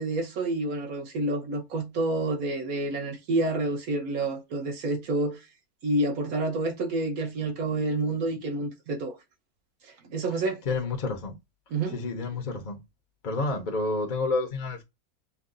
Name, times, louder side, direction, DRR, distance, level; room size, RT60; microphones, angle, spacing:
voice 1, 0.0-5.4 5.8-9.2 10.0-10.6 11.7-12.0, right 2 dB, 70° right, 1.4 m, -28 dB
voice 2, 10.7-11.3 11.9-12.8 13.2-14.8, left 3 dB, 45° left, 0.7 m, -29 dB
5.6 x 2.2 x 2.5 m
omnidirectional pair, 1.6 m